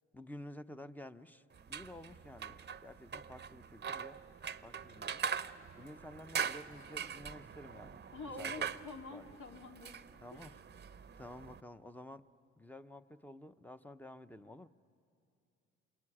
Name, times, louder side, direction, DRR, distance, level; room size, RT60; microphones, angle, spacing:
voice 1, 0.1-4.2 4.6-5.2 5.7-8.0 8.4-8.8 9.1-9.3 10.2-10.5 11.2-12.2 12.6-14.7, left 1 dB, 5° left, 11 dB, 0.7 m, -51 dB
sound 1, 1.5-11.6, right 7 dB, 35° right, 0.7 m, -43 dB
voice 2, 8.1-9.9 10.3-10.5, left 3 dB, 65° left, 2 dB, 2.5 m, -47 dB
27.5 x 22.0 x 9.9 m, 2.6 s
cardioid pair, 90°, 30 cm